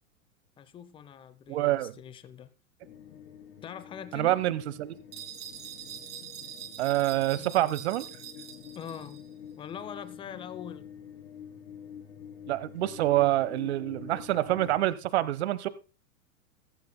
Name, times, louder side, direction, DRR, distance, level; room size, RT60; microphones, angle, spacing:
voice 1, 0.6-2.5 3.6-4.4 8.7-9.2 9.6-10.9, left 8 dB, 10° left, 0.6 m, -43 dB
voice 2, 1.5-1.9 4.1-5.0 6.8-8.0 12.5-15.7, right 15 dB, 50° right, 0.9 m, -26 dB
sound 1, 2.8-14.8, left 8 dB, 50° left, 3.1 m, -47 dB
sound 2, 5.1-9.3, right 9 dB, 25° right, 3.1 m, -44 dB
15.5 x 15.0 x 2.2 m
figure-of-eight pair, 100°, 42 cm